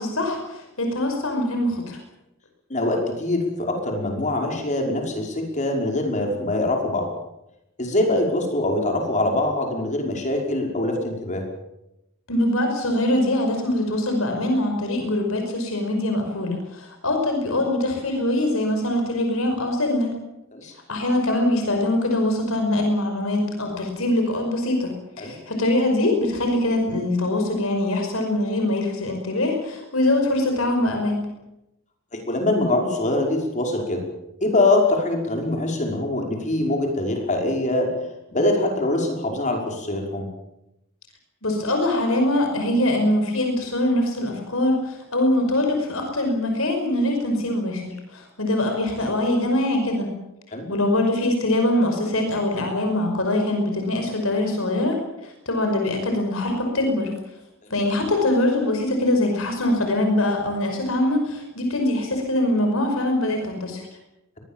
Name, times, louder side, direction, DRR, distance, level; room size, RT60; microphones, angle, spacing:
voice 1, 0.0-2.0 12.3-20.2 20.9-31.2 41.4-50.1 50.7-57.1 57.7-63.9, left 1 dB, 70° left, 4 dB, 5.6 m, -23 dB
voice 2, 2.7-7.1 7.8-11.5 20.5-20.7 25.2-25.3 32.1-34.0 34.4-37.9 38.3-40.3 50.5-50.7, left 2 dB, 35° left, 2 dB, 5.6 m, -23 dB
23.5 x 21.0 x 7.5 m, 0.88 s
head